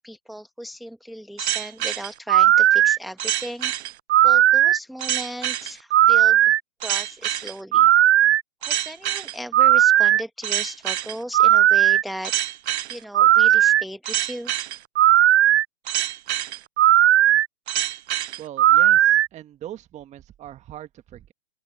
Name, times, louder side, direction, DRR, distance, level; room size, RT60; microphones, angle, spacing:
voice 1, 0.0-3.7 4.2-6.4 6.8-7.9 8.6-12.3 12.9-14.5, equal, ahead, 1.1 m, -36 dB
sound 1, 1.4-19.3, right 13 dB, 60° right, 0.5 m, -18 dB
voice 2, 18.4-21.3, right 12 dB, 15° right, 1.5 m, -40 dB
open air
hypercardioid pair, 130°, 39 cm